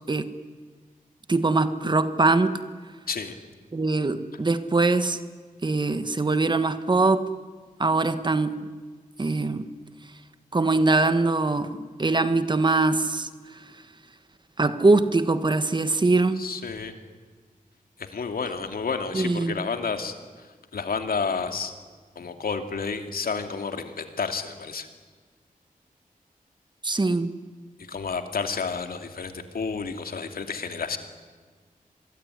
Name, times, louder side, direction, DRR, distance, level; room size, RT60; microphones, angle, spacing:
voice 1, 1.3-2.6 3.7-5.2 5.6-7.3 7.8-8.6 9.2-9.7 10.5-13.3 14.6-16.4 19.1-19.7 26.8-27.3, right 3 dB, 30° right, 11 dB, 1.5 m, -22 dB
voice 2, 16.4-16.9 18.0-21.7 22.2-24.9 27.9-31.0, left 5 dB, 90° left, 7 dB, 2.6 m, -31 dB
27.0 x 22.0 x 9.9 m, 1.5 s
wide cardioid pair, 140°, 15 cm